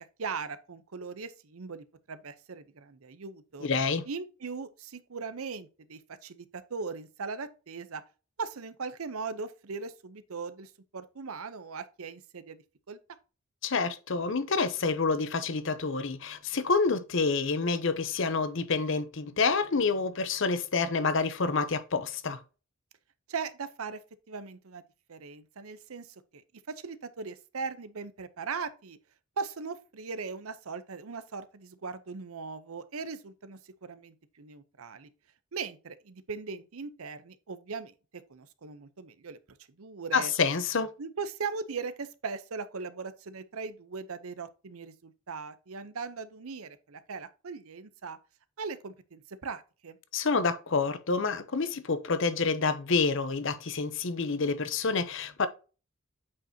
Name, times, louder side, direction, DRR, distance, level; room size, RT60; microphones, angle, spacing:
voice 1, 0.2-3.7 4.1-8.0 8.4-13.0 23.3-24.0 24.3-24.8 25.1-26.4 26.7-29.0 29.4-35.1 35.5-37.9 38.3-39.4 39.8-40.3 41.0-48.2 48.6-50.0, right 5 dB, 85° right, 0.7 m, -39 dB
voice 2, 3.6-4.0 13.6-22.4 40.1-40.9 50.1-55.5, left 4 dB, 60° left, 0.7 m, -28 dB
8.3 x 5.1 x 2.8 m
head